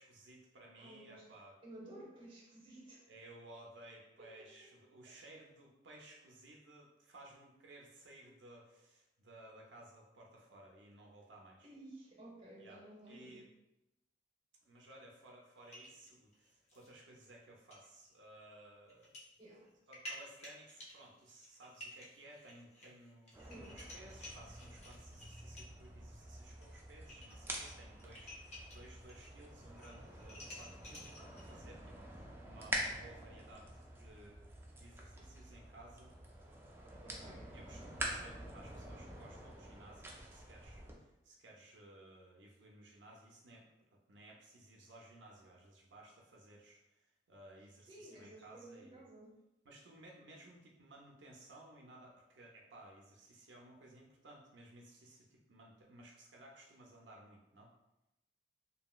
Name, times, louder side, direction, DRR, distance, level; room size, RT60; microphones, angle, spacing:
voice 1, 0.0-1.6 3.1-11.7 12.6-13.5 14.6-19.2 19.9-23.3 23.7-36.1 37.2-43.7 44.1-49.0 49.6-57.7, right 1 dB, 80° right, -1 dB, 0.5 m, -58 dB
voice 2, 0.8-1.3 1.6-3.1 4.2-4.7 5.1-5.2 11.6-13.4 19.4-19.7 23.4-23.8 37.0-37.9 47.8-49.3, right 1 dB, 30° right, -4 dB, 0.8 m, -55 dB
sound 1, 15.6-16.9 17.2-17.3 17.7-17.9 18.9-19.3 19.7-25.9 26.6-26.7 27.0-29.4 29.6-31.5, equal, 40° left, 0.8 m, -53 dB
sound 2, 23.3-41.0, right 1 dB, 15° right, 0.4 m, -47 dB
2.9 x 2.7 x 2.3 m, 0.92 s
head